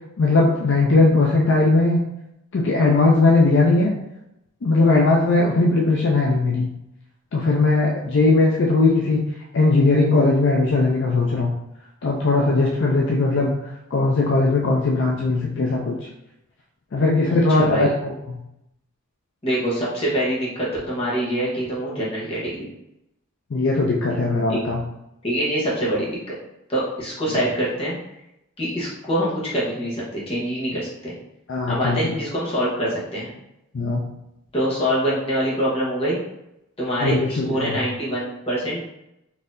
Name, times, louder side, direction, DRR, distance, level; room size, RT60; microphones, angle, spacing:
voice 1, 0.2-2.0 2.5-3.9 4.6-6.7 7.3-9.2 9.5-11.5 12.0-13.5 13.9-15.9 16.9-18.4 23.5-24.8 31.5-32.2 33.7-34.0 37.0-37.8, left 3 dB, 55° left, -2 dB, 0.4 m, -19 dB
voice 2, 17.2-17.9 19.4-22.7 24.5-24.6 25.2-26.4 26.7-27.9 28.6-31.1 31.7-33.3 34.5-36.2 36.8-38.8, equal, 25° left, -6 dB, 1.0 m, -25 dB
3.9 x 2.7 x 2.5 m, 0.86 s
head